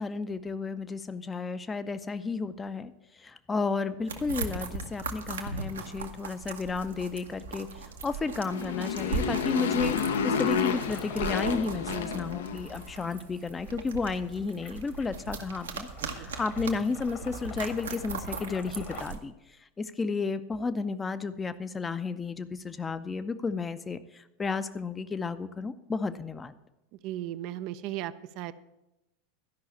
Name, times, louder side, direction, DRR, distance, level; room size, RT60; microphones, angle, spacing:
voice 1, 0.0-2.9 3.2-7.7 8.0-9.9 10.2-19.3 19.8-24.0 24.4-26.6, left 4 dB, 15° left, 12 dB, 0.6 m, -32 dB
sound 1, 4.1-19.2, right 4 dB, 70° right, 1.0 m, -39 dB
Motorcycle, 8.2-12.9, left 6 dB, 65° left, 0.7 m, -30 dB
sound 2, 10.0-19.0, left 7 dB, 40° left, 1.2 m, -49 dB
voice 2, 16.0-16.3 27.0-28.5, right 13 dB, 45° right, 12 dB, 0.5 m, -36 dB
12.5 x 5.6 x 8.3 m, 0.94 s
figure-of-eight pair, 85°, 0 cm